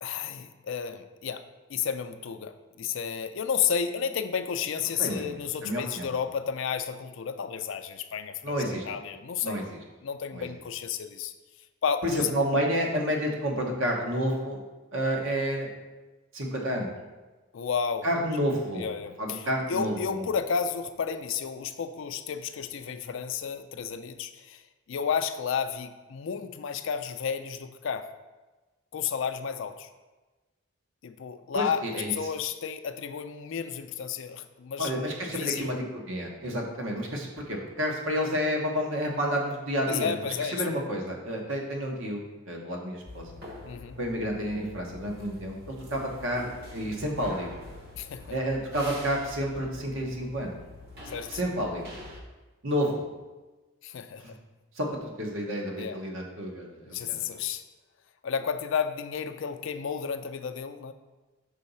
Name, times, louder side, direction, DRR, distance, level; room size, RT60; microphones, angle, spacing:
voice 1, 0.0-1.4 1.7-9.6 10.0-11.3 11.8-12.3 17.5-18.1 18.8-24.6 24.9-28.1 28.9-29.9 31.0-34.9 35.3-35.8 39.9-40.8 43.6-44.0 47.9-48.2 51.1-51.3 53.8-54.4 55.8-56.0 56.8-57.6 58.2-60.9, left 7 dB, 65° left, 9 dB, 0.4 m, -32 dB
voice 2, 5.0-5.3 5.6-6.1 8.4-8.8 9.4-9.6 10.3-10.5 12.0-14.6 14.9-15.7 16.3-16.9 18.0-18.9 19.2-20.3 31.5-32.1 34.8-43.3 44.0-47.5 48.3-50.5 51.3-51.8 52.6-53.1 54.2-54.3 54.8-57.2, equal, 70° right, 0 dB, 1.2 m, -30 dB
sound 1, 43.1-52.2, left 2 dB, 50° right, 1.2 m, -45 dB
5.4 x 4.0 x 5.5 m, 1.2 s
head